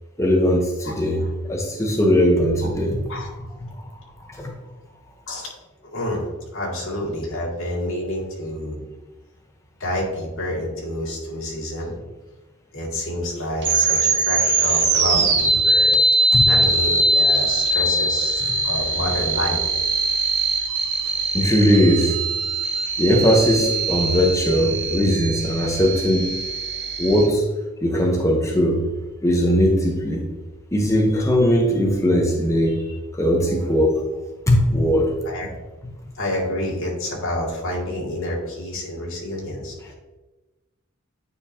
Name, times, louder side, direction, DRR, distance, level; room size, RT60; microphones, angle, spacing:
voice 1, 0.2-3.0 4.2-4.5 16.3-16.5 21.3-22.2 23.0-26.3 27.0-27.4 27.8-28.8 29.2-30.2 30.7-32.8 33.1-34.0 34.5-35.1, equal, 15° left, 0 dB, 0.8 m, -19 dB
voice 2, 5.9-6.2 6.5-8.8 9.8-12.0 12.7-15.9 16.4-19.6 35.2-35.5 36.2-39.9, left 1 dB, 65° left, -3 dB, 2.1 m, -28 dB
sound 1, 13.6-27.3, right 3 dB, 55° right, 1.2 m, -21 dB
9.6 x 4.5 x 2.7 m, 1.2 s
head